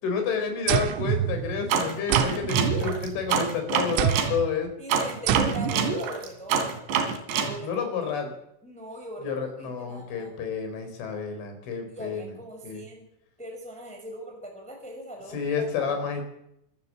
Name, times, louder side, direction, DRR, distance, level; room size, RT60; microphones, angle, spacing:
voice 1, 0.0-4.7 7.6-8.3 9.2-12.3 12.6-12.8 15.3-16.2, left 6 dB, 70° left, 6 dB, 6.5 m, -30 dB
sound 1, 0.7-1.7 2.1-3.4 4.0-4.5 5.3-5.9, right 11 dB, 85° right, 3.6 m, -27 dB
sound 2, 1.7-4.3 4.9-7.5, right 6 dB, 65° right, 4.3 m, -26 dB
voice 2, 4.8-6.7 7.4-8.1 8.6-10.4 11.9-13.1 13.4-16.1, right 1 dB, ahead, 1 dB, 4.9 m, -41 dB
25.5 x 14.0 x 7.5 m, 0.79 s
omnidirectional pair, 5.8 m